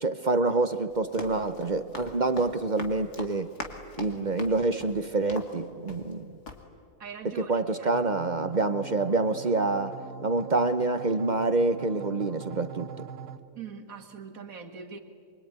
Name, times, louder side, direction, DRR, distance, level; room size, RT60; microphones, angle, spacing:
voice 1, 0.0-3.5 4.0-6.3 7.4-10.0 10.2-12.9, right 3 dB, 40° right, 10 dB, 0.7 m, -27 dB
Run, 0.9-6.2 6.4-6.6, left 3 dB, 80° left, 2.7 m, -42 dB
voice 2, 7.0-7.5 7.8-7.9 13.5-15.0, right 6 dB, 60° right, 4 dB, 2.3 m, -42 dB
sound 1, 7.9-13.4, right 5 dB, 85° right, 1.6 m, -43 dB
24.5 x 23.5 x 9.5 m, 2.5 s
omnidirectional pair, 1.6 m